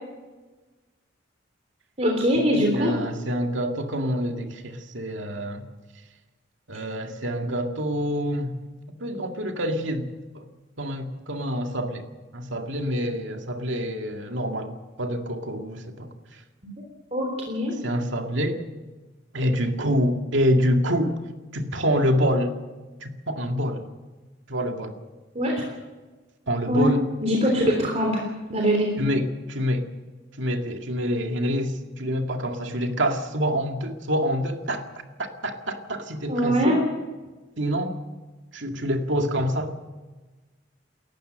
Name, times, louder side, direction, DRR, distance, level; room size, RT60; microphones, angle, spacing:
voice 1, 2.0-2.9 17.1-17.7 25.3-25.6 26.7-26.9 27.2-28.2 28.5-28.9 36.3-36.8, equal, 35° right, 0 dB, 3.4 m, -22 dB
voice 2, 2.5-5.6 6.7-8.6 9.0-10.1 10.3-10.5 10.8-12.1 12.3-16.4 17.8-18.6 19.3-21.2 21.5-22.6 23.0-23.9 24.5-25.0 26.5-27.0 29.0-29.9 30.4-34.9 35.2-36.8 37.6-37.9 38.5-39.7, equal, 75° right, 4 dB, 2.2 m, -26 dB
28.5 x 14.5 x 6.6 m, 1.3 s
head